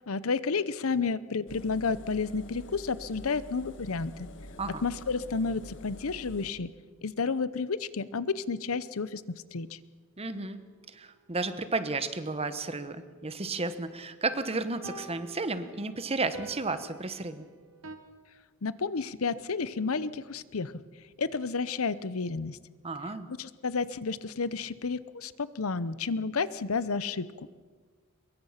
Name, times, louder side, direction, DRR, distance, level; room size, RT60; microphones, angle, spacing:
voice 1, 0.1-4.1 4.8-6.7 7.0-9.2 9.5-9.7 18.6-20.7 21.2-22.6 23.4-27.3, left 4 dB, 80° left, 16 dB, 0.8 m, -31 dB
Engine, 1.5-6.5, left 1 dB, 60° left, 1.5 m, -47 dB
voice 2, 10.2-10.6 10.9-17.5 22.8-23.3, right 3 dB, 30° right, 11 dB, 1.1 m, -33 dB
sound 1, 10.6-10.7 14.8-18.0, right 3 dB, 70° right, 1.7 m, -48 dB
24.0 x 22.0 x 5.8 m, 1.5 s
head